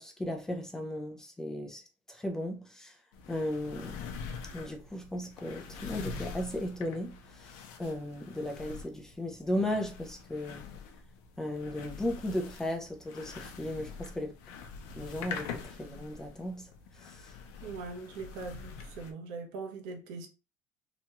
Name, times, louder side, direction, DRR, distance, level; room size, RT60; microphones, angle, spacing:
voice 1, 0.0-1.8 2.1-3.0 3.3-4.0 4.5-10.6 11.4-14.3 15.0-16.7 17.0-17.3, left 1 dB, 5° left, 0.4 m, -36 dB
sound 1, 3.1-19.1, left 5 dB, 75° left, 0.5 m, -45 dB
voice 2, 17.6-20.3, right 4 dB, 75° right, 0.8 m, -41 dB
2.9 x 2.3 x 2.8 m
cardioid pair, 165°, 8 cm